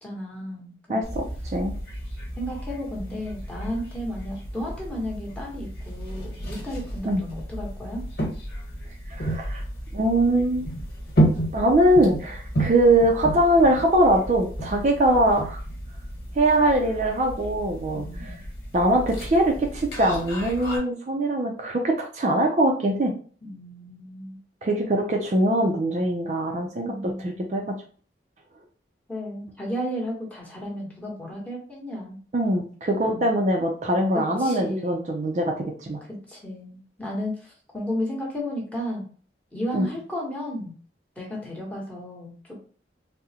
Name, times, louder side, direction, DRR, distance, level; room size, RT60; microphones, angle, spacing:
voice 1, 0.0-1.1 2.4-8.0 14.7-15.0 17.9-18.4 23.4-24.4 26.8-27.8 29.1-32.2 33.0-33.3 34.4-35.1 36.3-39.0 39.5-40.7 41.2-42.5, equal, 10° left, -4 dB, 0.9 m, -33 dB
voice 2, 0.9-1.7 7.1-7.2 9.1-9.6 9.9-10.7 11.5-15.6 16.4-18.3 18.7-23.1 24.6-27.8 32.3-36.0 39.7-39.9, right 1 dB, 40° right, 1 dB, 0.4 m, -22 dB
sound 1, 1.0-20.8, right 1 dB, 65° left, 1.2 m, -32 dB
3.6 x 2.0 x 2.7 m, 0.42 s
head